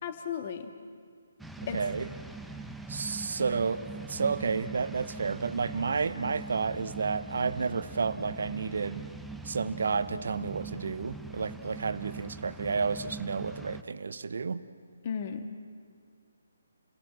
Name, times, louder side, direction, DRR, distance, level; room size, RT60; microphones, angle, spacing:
voice 1, 0.0-0.7 1.7-1.8 15.0-15.5, left 7 dB, 40° left, 1.6 m, -34 dB
sound 1, 1.4-13.8, right 3 dB, ahead, 0.7 m, -42 dB
voice 2, 1.6-2.1 2.9-9.1 9.4-14.7, right 5 dB, 65° right, 0.9 m, -31 dB
30.0 x 18.0 x 7.5 m
figure-of-eight pair, 145°, 0 cm